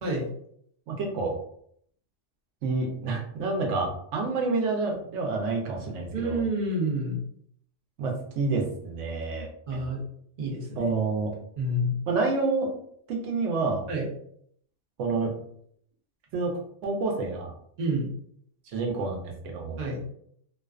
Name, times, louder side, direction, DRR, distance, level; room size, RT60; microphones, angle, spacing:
voice 1, 0.9-1.3 2.6-6.4 8.0-9.8 10.8-11.3 12.1-12.7 13.1-13.9 15.0-15.3 16.3-17.5 18.7-19.8, right 3 dB, 85° right, 1 dB, 0.9 m, -28 dB
voice 2, 6.1-7.2 9.7-10.0 10.4-10.9 11.6-11.9 13.9-14.1 17.8-18.1 19.8-20.0, right 1 dB, 45° right, -2 dB, 0.8 m, -28 dB
2.4 x 2.2 x 2.3 m, 0.67 s
omnidirectional pair, 1.2 m